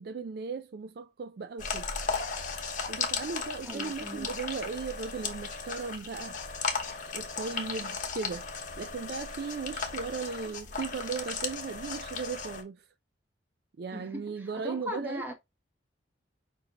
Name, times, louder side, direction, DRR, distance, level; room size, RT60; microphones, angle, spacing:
voice 1, 0.0-1.9 2.9-6.4 7.1-8.5 8.8-12.8 13.8-15.2, right 5 dB, 55° right, 0.4 m, -37 dB
sound 1, 1.6-12.6, left 5 dB, 45° left, 1.1 m, -36 dB
voice 2, 3.7-4.3 13.9-15.3, left 1 dB, 10° right, 1.0 m, -39 dB
6.5 x 2.7 x 2.9 m
head